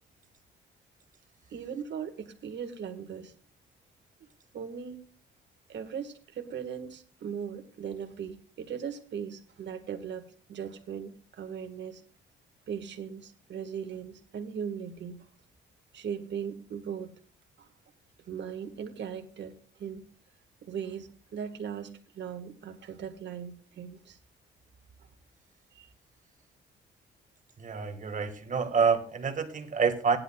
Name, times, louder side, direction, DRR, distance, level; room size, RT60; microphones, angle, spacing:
voice 1, 1.5-3.3 4.5-5.0 5.7-12.0 12.7-15.3 15.9-17.2 17.6-17.7 18.3-20.1 20.6-24.2 25.7-25.9, right 7 dB, 65° right, 7 dB, 1.6 m, -39 dB
voice 2, 27.6-30.2, right 6 dB, 40° right, 7 dB, 1.7 m, -27 dB
17.5 x 10.5 x 2.3 m, 0.42 s
cardioid pair, 90°, 20 cm